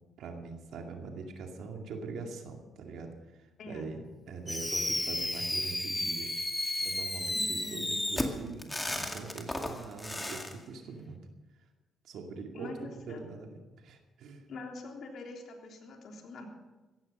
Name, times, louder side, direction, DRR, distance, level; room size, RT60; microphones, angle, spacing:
voice 1, 0.2-6.3 6.8-11.3 12.0-12.8 13.1-14.5, right 4 dB, 75° right, 3 dB, 2.3 m, -43 dB
Fireworks, 4.5-10.5, left 1 dB, 10° left, 2.2 m, -33 dB
voice 2, 7.3-7.9 12.5-13.2 14.5-16.5, left 2 dB, 65° left, 2 dB, 3.4 m, -44 dB
16.0 x 15.0 x 5.4 m, 1.2 s
cardioid pair, 90°, 0 cm